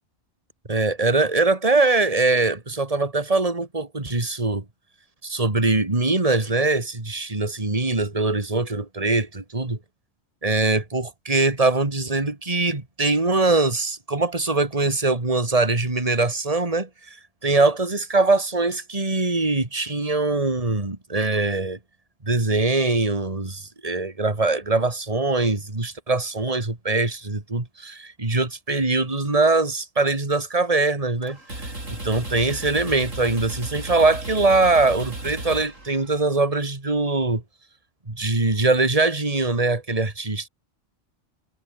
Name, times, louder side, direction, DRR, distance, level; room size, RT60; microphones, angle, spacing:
voice 1, 0.7-4.6 5.2-9.8 10.4-17.2 17.4-21.8 22.2-31.4 31.9-37.4 38.1-40.5, right 3 dB, 30° right, 2.8 m, -22 dB
sound 1, 31.2-36.4, right 2 dB, 90° right, 7.5 m, -35 dB
omnidirectional pair, 1.3 m